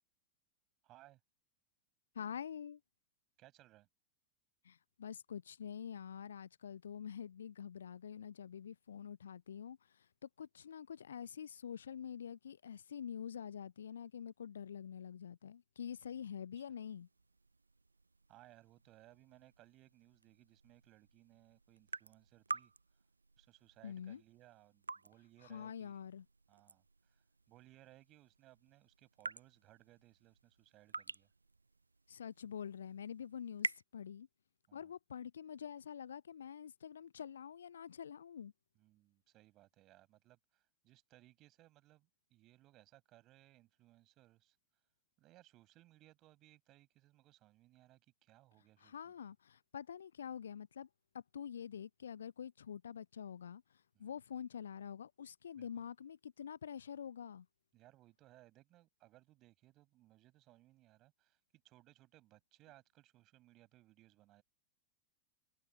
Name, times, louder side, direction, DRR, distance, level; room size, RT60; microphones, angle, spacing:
voice 1, 0.8-1.2 3.4-3.9 16.5-16.6 18.3-22.7 23.4-26.0 26.5-31.3 34.7-34.9 38.7-44.6 45.2-49.3 53.9-54.2 55.6-55.8 57.7-61.4 61.6-64.4, right 16 dB, 35° right, 6.1 m, -64 dB
voice 2, 2.2-2.8 4.6-17.1 23.8-24.2 25.4-26.3 32.1-34.3 34.7-38.5 48.8-50.9 51.1-53.6 54.0-57.5, left 8 dB, 65° left, 0.4 m, -46 dB
sound 1, 16.8-33.8, right 3 dB, 80° right, 0.3 m, -50 dB
figure-of-eight pair, 90°, 0 cm